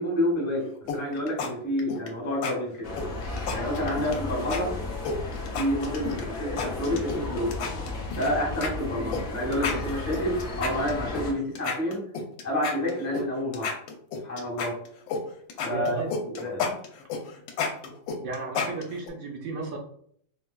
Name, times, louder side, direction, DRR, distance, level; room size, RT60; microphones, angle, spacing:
voice 1, 0.0-2.9 3.5-4.7 5.5-7.5 8.1-12.0 12.4-13.7 14.2-14.7 15.6-16.7, left 1 dB, 10° left, -6 dB, 1.0 m, -29 dB
sound 1, 0.9-1.5 1.8-2.1 2.4-2.5 3.0-4.2 4.5-4.6 5.0-6.2 6.6-7.2 7.5-8.3 8.6-8.7 9.1-9.2 9.5-11.2 11.5-13.2 13.5-15.2 15.5-19.1, left 5 dB, 80° left, 1.3 m, -31 dB
sound 2, 2.8-11.3, left 2 dB, 60° left, 0.6 m, -34 dB
voice 2, 15.7-16.1 18.2-19.8, right 4 dB, 90° right, -1 dB, 0.7 m, -33 dB
4.4 x 2.2 x 2.2 m, 0.63 s
omnidirectional pair, 2.1 m